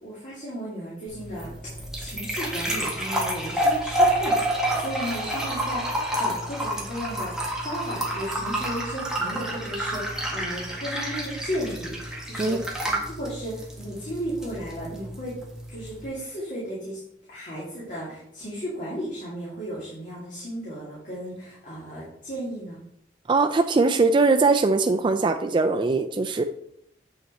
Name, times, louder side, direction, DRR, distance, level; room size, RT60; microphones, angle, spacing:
voice 1, 0.0-1.5 2.0-7.3 7.6-15.3 15.7-17.0 17.3-22.8, equal, 45° left, -7 dB, 2.5 m, -35 dB
sound 1, 1.1-16.0, right 1 dB, 5° right, 1.6 m, -29 dB
voice 2, 23.3-26.4, right 3 dB, 30° right, 5 dB, 0.3 m, -21 dB
7.6 x 5.7 x 4.2 m, 0.73 s
head